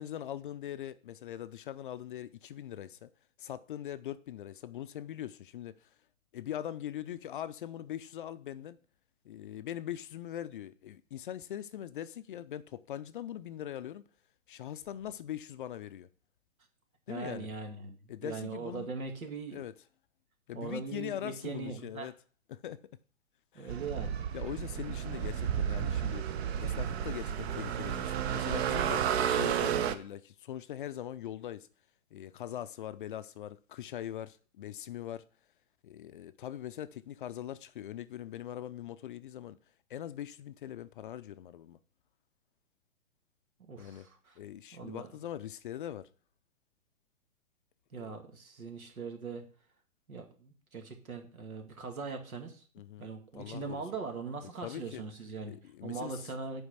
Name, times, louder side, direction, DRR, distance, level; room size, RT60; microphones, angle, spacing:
voice 1, 0.0-3.1 3.4-5.9 6.3-8.8 9.2-14.0 14.5-16.1 17.1-17.5 18.1-18.9 19.5-19.7 20.5-22.1 22.5-22.8 23.5-23.8 24.3-26.3 26.6-29.0 29.3-31.7 32.1-35.2 35.8-39.6 39.9-41.8 43.8-44.1 44.4-46.1 47.9-48.1 52.8-53.8 54.6-55.0 55.5-56.1, left 11 dB, 40° left, 0.5 m, -41 dB
voice 2, 17.1-19.6 20.5-22.1 23.5-24.4 43.6-44.4 44.7-45.1 47.9-49.4 50.1-52.6 53.0-56.6, right 4 dB, 85° right, 2.5 m, -41 dB
sound 1, 23.7-30.0, right 9 dB, 50° right, 0.9 m, -32 dB
8.0 x 5.1 x 6.6 m
hypercardioid pair, 130°, 41 cm